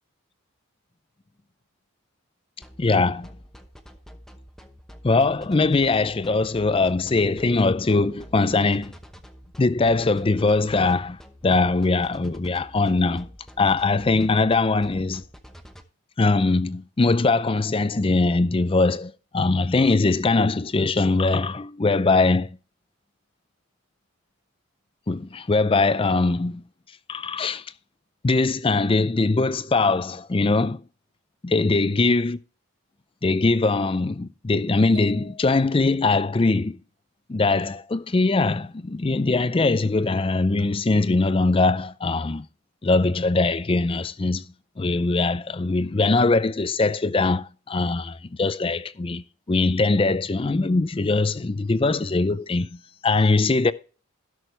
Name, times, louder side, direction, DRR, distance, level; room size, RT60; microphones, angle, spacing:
sound 1, 2.6-15.8, equal, ahead, 0.9 m, -46 dB
voice 1, 2.8-3.3 5.0-8.9 9.6-11.2 11.4-13.3 13.6-15.2 16.2-22.5 25.1-26.6 27.1-27.6 28.2-30.8 31.4-32.4 33.2-36.8 37.3-42.5 42.8-44.4 44.8-53.7, left 3 dB, 25° left, 0.4 m, -21 dB
sound 2, 34.9-36.1, left 7 dB, 50° right, 2.2 m, -47 dB
16.5 x 6.3 x 3.3 m
head